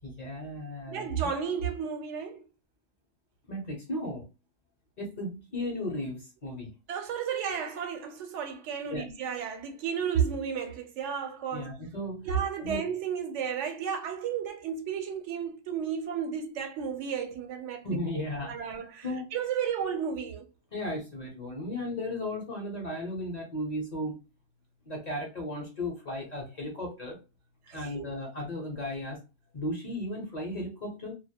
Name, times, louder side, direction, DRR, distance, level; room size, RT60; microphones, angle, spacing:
voice 1, 0.0-1.3 3.5-4.2 5.0-6.7 8.9-9.0 11.5-12.3 12.6-12.8 17.8-18.7 19.0-19.3 20.7-24.2 24.9-27.2 27.7-29.2 29.5-31.2, left 1 dB, 45° left, 0.6 m, -35 dB
voice 2, 0.9-2.4 6.9-11.7 12.3-17.9 18.4-19.1 19.3-20.5 27.7-28.1, right 7 dB, 80° right, 0.9 m, -32 dB
2.2 x 2.0 x 2.7 m
omnidirectional pair, 1.2 m